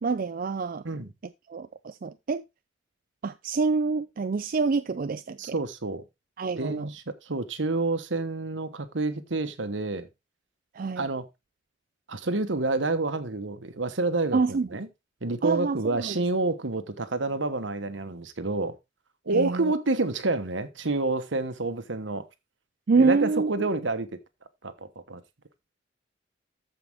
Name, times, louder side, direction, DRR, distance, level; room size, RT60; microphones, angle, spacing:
voice 1, 0.0-0.8 1.5-2.4 3.2-5.5 6.4-6.9 10.7-11.1 14.3-14.7 15.4-16.2 19.3-19.7 22.9-23.7, right 4 dB, 50° right, 0.4 m, -26 dB
voice 2, 5.4-6.0 6.6-10.1 11.0-11.3 12.1-14.9 15.2-18.8 19.3-22.3 23.0-24.2 24.6-24.7 25.1-25.2, right 3 dB, 75° right, 1.2 m, -28 dB
13.5 x 5.2 x 3.5 m
head